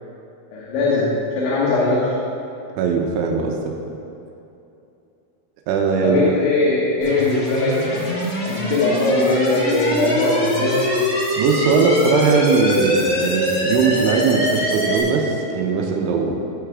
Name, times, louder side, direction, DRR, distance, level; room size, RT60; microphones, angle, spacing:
voice 1, 0.5-2.1 6.0-10.8, left 2 dB, 80° left, -6 dB, 3.5 m, -20 dB
voice 2, 2.8-3.7 5.7-6.3 11.4-16.4, right 5 dB, 85° right, 1 dB, 3.2 m, -20 dB
sound 1, 7.0-15.0, left 1 dB, 35° left, 1.3 m, -23 dB
15.0 x 5.8 x 3.6 m, 2.8 s
omnidirectional pair, 5.3 m